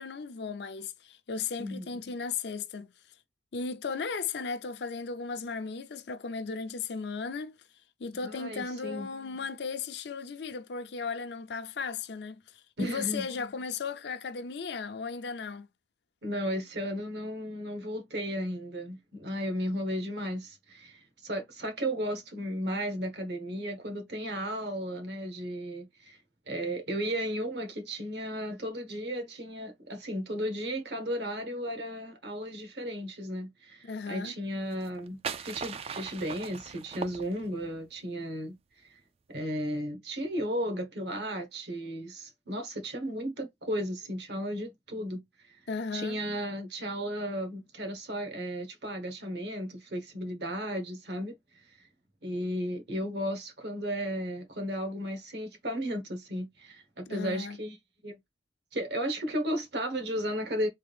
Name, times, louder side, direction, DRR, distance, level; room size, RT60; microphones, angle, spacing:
voice 1, 0.0-2.9 3.5-7.6 8.0-15.7 33.8-34.3 45.7-46.2 57.1-57.6, left 5 dB, 70° left, 0.5 m, -36 dB
voice 2, 8.2-9.1 12.8-13.2 16.2-26.2 26.5-39.0 39.3-45.2 45.5-45.6 45.9-51.8 52.2-57.8 58.0-58.2 58.7-60.7, equal, 70° right, 1.2 m, -34 dB
sound 1, 34.7-37.8, right 6 dB, 35° right, 0.3 m, -39 dB
3.6 x 2.4 x 3.3 m
head